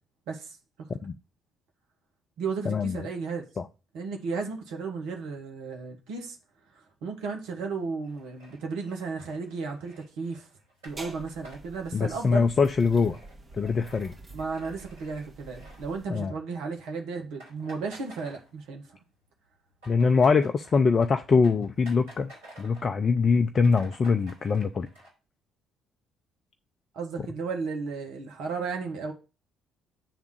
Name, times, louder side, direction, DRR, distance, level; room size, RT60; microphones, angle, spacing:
voice 1, 0.3-0.9 2.4-3.5 3.9-6.4 7.0-10.5 10.8-12.5 14.3-19.0 26.9-29.1, right 4 dB, 60° right, 1.2 m, -34 dB
voice 2, 2.7-3.1 3.6-3.7 11.9-13.2 13.6-14.1 16.1-16.3 19.9-22.3 22.6-24.9, left 5 dB, 35° left, 0.5 m, -23 dB
sound 1, 8.0-16.4 16.7-16.9 17.1-18.9 19.2-23.0 23.3-23.4 23.6-25.1, right 1 dB, 80° right, 3.5 m, -53 dB
sound 2, 10.9-16.1, right 2 dB, 30° right, 1.9 m, -47 dB
8.1 x 3.5 x 6.5 m
figure-of-eight pair, 50°, 0 cm